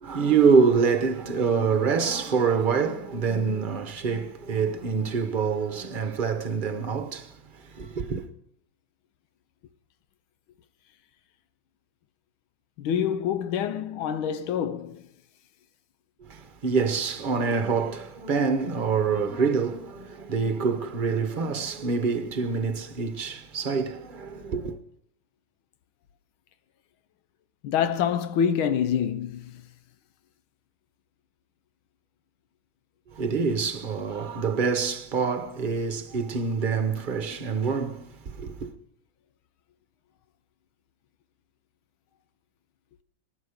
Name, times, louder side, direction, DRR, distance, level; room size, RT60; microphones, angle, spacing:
voice 1, 0.0-7.3 7.7-8.3 16.3-24.8 33.2-38.7, right 5 dB, 35° right, 0.9 m, -26 dB
voice 2, 12.8-15.0 27.6-29.5, left 8 dB, 90° left, 1.6 m, -26 dB
20.0 x 11.5 x 5.2 m
omnidirectional pair, 2.2 m